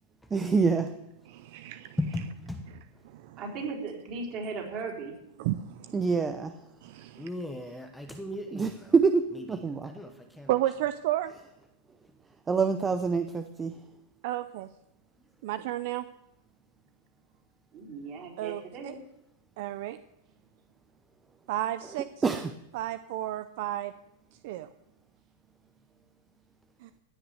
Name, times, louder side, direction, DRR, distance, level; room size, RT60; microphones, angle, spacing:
voice 1, 0.3-0.9 5.9-6.6 8.5-9.9 12.5-13.8 22.2-22.5, right 5 dB, 15° right, 9 dB, 0.6 m, -26 dB
voice 2, 1.3-2.0 2.7-3.4 5.4-6.1 6.8-7.3 10.5-11.3 14.2-14.7 15.4-16.1 18.4-19.0 19.6-20.0 21.5-22.1 22.7-23.9 24.4-24.7 26.8-26.9, right 14 dB, 55° right, 12 dB, 0.6 m, -32 dB
voice 3, 2.0-2.6 7.2-8.9 9.8-10.5, left 1 dB, 5° left, 4 dB, 1.1 m, -36 dB
voice 4, 3.4-5.2 17.9-19.0, right 4 dB, 35° right, -1 dB, 4.2 m, -37 dB
16.5 x 5.9 x 9.4 m, 0.87 s
supercardioid pair, 145°, 0 cm